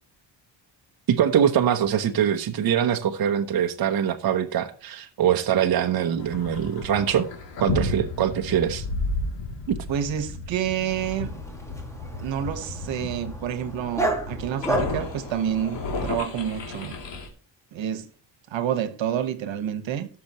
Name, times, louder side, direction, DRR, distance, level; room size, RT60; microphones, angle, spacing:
voice 1, 1.1-7.3 7.6-8.8, right 9 dB, 55° right, 1.0 m, -23 dB
sound 1, 6.2-17.3, left 2 dB, 70° left, 3.2 m, -33 dB
voice 2, 9.9-11.3 12.2-17.0 17.7-18.0 18.5-20.1, right 9 dB, 80° right, 1.5 m, -28 dB
Dog, 10.9-16.2, right 2 dB, 5° left, 2.1 m, -33 dB
17.5 x 6.9 x 3.1 m
cardioid pair, 165°, 45 cm